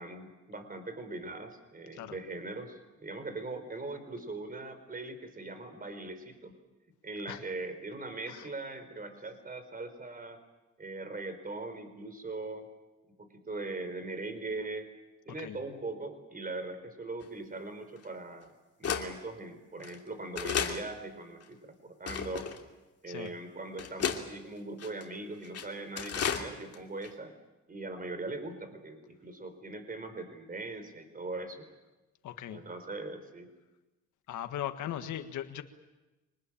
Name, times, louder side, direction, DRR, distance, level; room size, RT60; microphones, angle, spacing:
voice 1, 0.0-6.6 7.0-10.4 10.8-12.7 13.2-14.9 15.3-18.5 18.8-22.5 23.0-27.3 27.7-31.6 32.5-33.5, right 2 dB, 30° right, 10 dB, 4.5 m, -40 dB
sound 1, 17.2-17.3 18.0-18.1 18.8-19.1 19.8-20.0 20.4-20.8 21.4-21.5 22.1-22.6 23.3-23.4 23.8-24.2 24.8-25.0 25.4-25.7 26.0-26.5 26.7-26.8 27.0-27.1, left 7 dB, 55° left, 2.9 m, -33 dB
voice 2, 32.2-32.6 34.3-35.6, left 11 dB, 75° left, 8 dB, 1.7 m, -38 dB
25.0 x 20.0 x 8.9 m, 1.1 s
cardioid pair, 90°, 30 cm